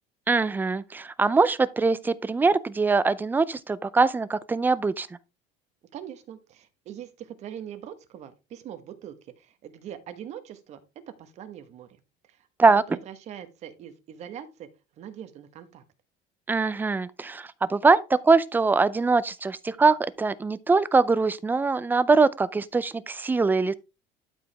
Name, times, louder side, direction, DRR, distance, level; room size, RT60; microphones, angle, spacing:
voice 1, 0.3-5.1 12.6-12.8 16.5-23.7, right 4 dB, 10° right, 0.5 m, -22 dB
voice 2, 5.9-11.9 12.3-14.7 15.0-15.8, right 10 dB, 45° right, 1.4 m, -42 dB
12.0 x 4.9 x 3.4 m
cardioid pair, 150°, 16 cm